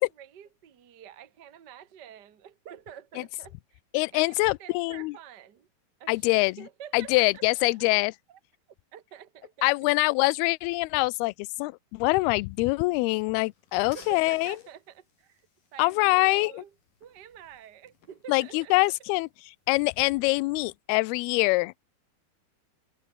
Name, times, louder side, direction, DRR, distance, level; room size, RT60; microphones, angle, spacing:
voice 1, 0.2-3.8 4.1-5.7 6.0-7.4 7.7-8.4 8.9-9.7 13.8-15.4 15.7-16.7 17.0-18.9, right 9 dB, 55° right, 1.1 m, -48 dB
voice 2, 3.9-5.1 6.1-6.6 6.9-8.1 9.6-11.3 11.6-14.6 15.8-16.6 18.3-19.3 19.7-21.8, left 24 dB, 80° left, 2.4 m, -24 dB
sound 1, 12.5-20.7, left 6 dB, 55° left, 5.9 m, -59 dB
omnidirectional pair, 4.7 m